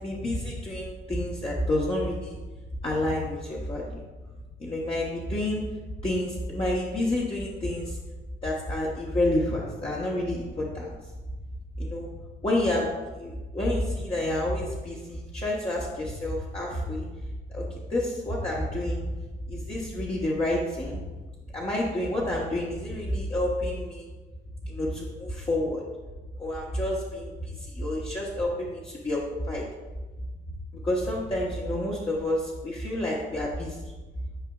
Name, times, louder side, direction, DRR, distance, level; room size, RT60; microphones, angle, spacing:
voice 1, 0.0-2.4 2.8-4.0 4.6-5.7 6.0-8.0 8.4-10.9 11.8-12.1 12.4-12.9 13.2-17.1 17.5-19.1 19.5-21.0 21.5-24.0 24.6-25.8 26.4-29.2 29.5-29.6 30.8-33.9, left 1 dB, 30° left, -5 dB, 1.0 m, -29 dB
8.9 x 4.8 x 2.4 m, 1.2 s
cardioid pair, 90°, 20 cm